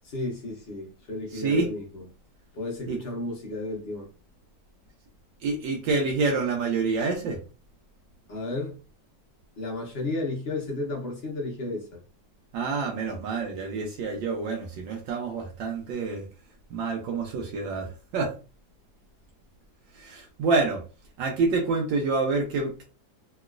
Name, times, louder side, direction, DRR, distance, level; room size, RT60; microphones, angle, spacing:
voice 1, 0.0-2.0 2.5-4.1 8.3-8.8 9.6-12.0, left 2 dB, 70° left, 0.5 m, -33 dB
voice 2, 1.3-1.7 2.9-3.0 5.4-7.4 12.5-16.2 16.7-18.3 19.9-20.8 21.2-22.8, right 4 dB, 80° right, 1.3 m, -27 dB
3.0 x 2.9 x 2.4 m
omnidirectional pair, 2.0 m